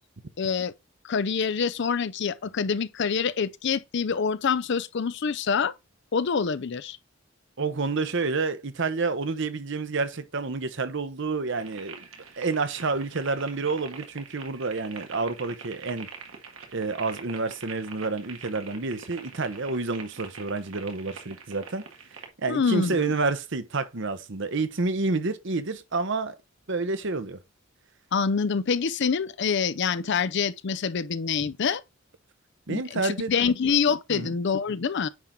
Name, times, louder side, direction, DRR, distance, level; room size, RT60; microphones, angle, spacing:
voice 1, 0.4-0.7 1.0-5.7 6.1-7.0 22.5-23.0 28.1-31.8 32.7-35.1, left 6 dB, 55° left, 0.5 m, -26 dB
voice 2, 7.6-12.1 12.4-16.1 16.7-21.8 22.4-26.4 26.7-27.4 32.7-33.5 34.1-34.3, right 3 dB, 60° right, 0.9 m, -29 dB
sound 1, 11.5-22.3, right 5 dB, 85° right, 1.8 m, -44 dB
9.6 x 4.5 x 3.7 m
head